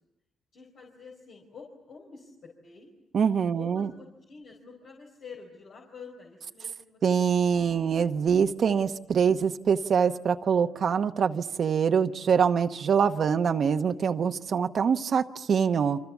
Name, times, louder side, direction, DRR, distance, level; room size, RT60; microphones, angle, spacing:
voice 1, 0.5-2.9 3.5-7.5, left 5 dB, 75° left, 0 dB, 4.7 m, -48 dB
voice 2, 3.1-3.9 7.0-16.0, right 7 dB, 65° right, 6 dB, 1.0 m, -24 dB
30.0 x 25.0 x 7.2 m, 0.91 s
cardioid pair, 70°, 0 cm